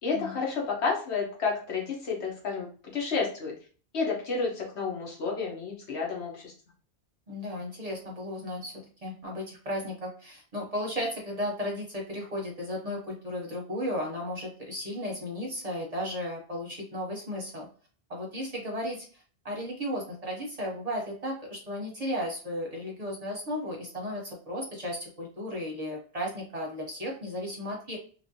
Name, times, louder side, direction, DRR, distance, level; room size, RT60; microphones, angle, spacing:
voice 1, 0.0-3.5 3.9-6.5, left 4 dB, 80° left, -2 dB, 1.2 m, -31 dB
voice 2, 7.3-8.7 9.0-17.7 18.1-28.0, equal, 40° right, -1 dB, 0.7 m, -35 dB
3.0 x 2.6 x 2.6 m, 0.41 s
omnidirectional pair, 1.1 m